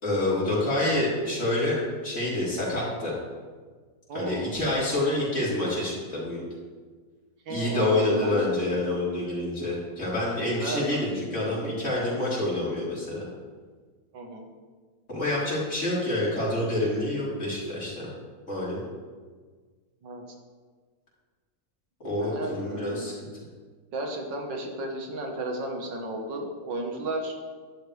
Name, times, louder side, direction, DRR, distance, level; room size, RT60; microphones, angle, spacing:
voice 1, 0.0-3.1 4.1-6.4 7.5-13.3 15.1-18.1 18.5-18.9 22.0-23.3, left 1 dB, 40° left, -8 dB, 4.2 m, -27 dB
voice 2, 4.1-4.6 7.5-8.6 10.6-11.1 14.1-14.5 20.0-20.2 22.2-23.1 23.9-27.3, right 2 dB, 85° right, 2 dB, 2.1 m, -33 dB
11.5 x 11.5 x 3.4 m, 1.5 s
omnidirectional pair, 1.9 m